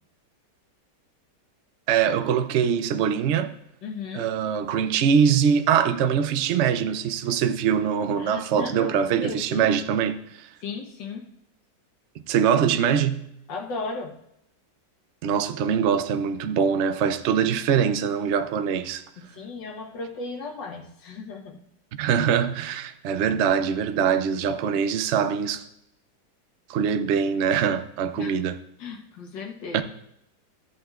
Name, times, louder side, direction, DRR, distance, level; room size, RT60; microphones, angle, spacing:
voice 1, 1.9-3.5 4.1-10.5 12.3-13.3 15.2-19.0 22.0-25.7 26.7-28.6 29.7-29.8, right 7 dB, 90° right, 0.6 m, -23 dB
voice 2, 3.8-4.3 8.2-9.7 10.6-11.3 13.5-14.1 19.2-21.6 28.1-28.4 28.8-29.8, left 4 dB, 85° left, 1.9 m, -35 dB
13.5 x 8.5 x 2.4 m
omnidirectional pair, 1.9 m